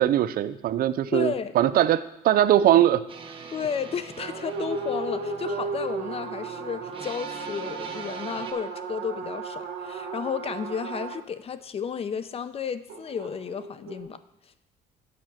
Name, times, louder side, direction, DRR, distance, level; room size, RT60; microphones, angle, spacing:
voice 1, 0.0-3.0, right 12 dB, 60° right, 14 dB, 0.5 m, -21 dB
voice 2, 1.1-1.5 3.5-14.2, left 7 dB, 35° left, 13 dB, 0.5 m, -33 dB
sound 1, 3.1-8.5, right 4 dB, 30° right, 1.1 m, -43 dB
sound 2, 4.2-11.2 12.9-14.0, right 4 dB, 80° right, 2.1 m, -34 dB
8.5 x 5.1 x 7.5 m, 0.86 s
cardioid pair, 110°, 17 cm